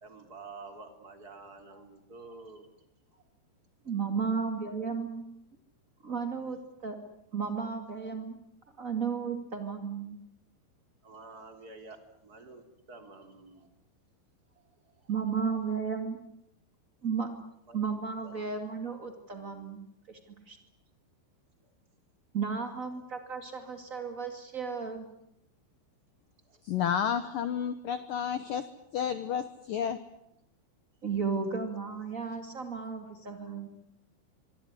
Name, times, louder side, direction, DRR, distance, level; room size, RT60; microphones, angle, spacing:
voice 1, 0.0-2.7 3.1-3.2 4.2-4.3 7.9-8.1 11.0-13.7 14.5-15.1 17.7-17.8 18.2-18.5 21.6-21.7 22.9-23.0 26.4-26.6, right 3 dB, 25° right, 7 dB, 2.9 m, -50 dB
voice 2, 3.8-5.2 6.0-7.0 7.3-8.3 8.8-10.2 15.1-16.2 17.0-17.3 17.7-20.2 20.4-20.6 22.3-25.0 31.0-33.7, right 5 dB, 55° right, 6 dB, 0.8 m, -34 dB
voice 3, 26.6-28.6 28.9-30.0, left 8 dB, 85° left, 12 dB, 1.9 m, -31 dB
25.0 x 23.5 x 9.8 m, 0.80 s
omnidirectional pair, 5.8 m